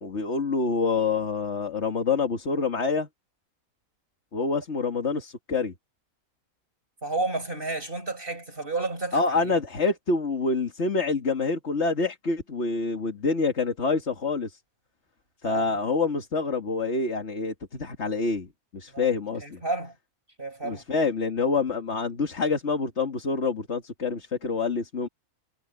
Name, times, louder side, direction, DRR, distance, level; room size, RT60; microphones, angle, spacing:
voice 1, 0.0-3.1 4.3-5.7 9.1-14.6 15.4-18.5 18.7-19.6 20.6-25.1, left 4 dB, 50° left, 2.2 m, -27 dB
voice 2, 7.0-9.5 15.4-15.7 18.9-19.1 19.4-19.9 20.4-20.8, right 2 dB, 40° right, 6.1 m, -31 dB
omnidirectional pair, 1.5 m